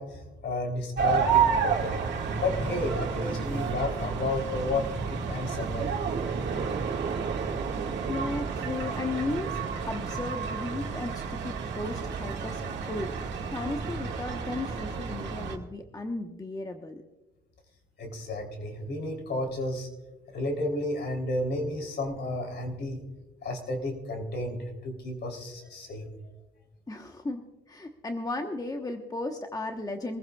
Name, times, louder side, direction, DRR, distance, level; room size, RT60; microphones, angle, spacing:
voice 1, 0.0-2.0 2.4-5.9 18.0-19.9 20.3-23.0 23.4-26.1, left 2 dB, 60° left, 3 dB, 3.4 m, -32 dB
sound 1, 1.0-15.6, right 6 dB, 65° right, 1.9 m, -30 dB
voice 2, 7.3-7.7 8.1-9.6 9.9-12.6 12.9-13.1 13.4-17.0 26.9-30.2, left 2 dB, 20° left, 4 dB, 1.1 m, -35 dB
23.5 x 15.0 x 2.4 m, 1.1 s
cardioid pair, 90°, 20 cm